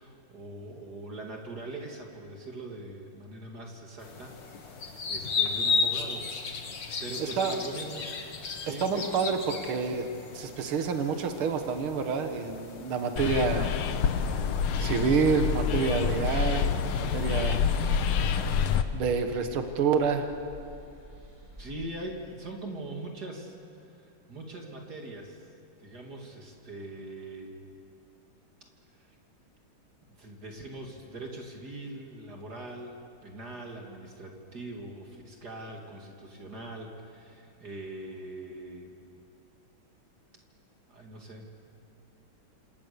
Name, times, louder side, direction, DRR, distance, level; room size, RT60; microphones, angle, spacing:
voice 1, 0.0-6.3 6.6-8.1 8.6-8.9 21.6-23.6 23.8-25.5 25.8-27.6 28.9-29.1 30.2-38.9 40.9-41.6, right 2 dB, 50° right, 1 dB, 2.9 m, -42 dB
sound 1, 4.0-18.8, left 5 dB, 60° left, 2.5 m, -36 dB
voice 2, 7.2-7.6 8.8-10.1 10.3-13.7 14.8-16.6 17.0-17.6 18.9-20.3, right 5 dB, 80° right, 6 dB, 2.3 m, -28 dB
sound 2, 13.2-18.8, left 7 dB, 85° left, 2.0 m, -27 dB
sound 3, 13.3-21.9, equal, 15° right, 4.2 m, -52 dB
27.5 x 26.5 x 6.9 m, 2.5 s
omnidirectional pair, 2.3 m